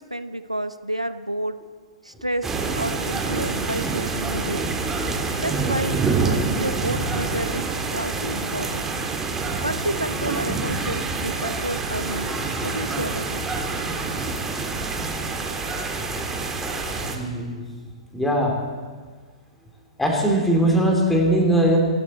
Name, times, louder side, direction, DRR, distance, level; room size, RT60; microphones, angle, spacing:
voice 1, 0.0-1.6 2.0-4.7 5.4-8.9 9.6-13.5, right 1 dB, 90° right, 11 dB, 0.7 m, -30 dB
sound 1, 2.4-17.2, right 3 dB, 10° right, 1.6 m, -26 dB
voice 2, 16.1-16.8 17.1-17.6 18.1-18.6 20.0-21.8, right 1 dB, 5° left, 1 dB, 2.8 m, -21 dB
25.0 x 12.5 x 4.4 m, 1.5 s
figure-of-eight pair, 110°, 3 cm